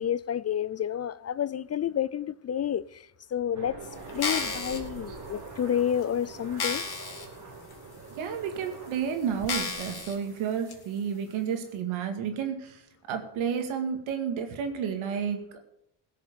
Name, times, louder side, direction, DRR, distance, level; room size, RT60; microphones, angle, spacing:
voice 1, 0.0-2.9 3.3-3.7 4.1-6.8, left 9 dB, 35° left, 0.4 m, -29 dB
Aircraft, 3.5-10.6, right 3 dB, 40° right, 2.8 m, -44 dB
sound 1, 4.1-4.8 5.5-5.6 6.0-6.1 6.6-7.3 7.7-7.8 8.6-8.7 9.5-10.2 10.7-10.8, left 5 dB, 50° left, 2.7 m, -32 dB
voice 2, 8.2-12.8 13.1-15.6, right 7 dB, 85° right, 2.3 m, -31 dB
17.0 x 6.6 x 6.8 m
cardioid pair, 75°, 47 cm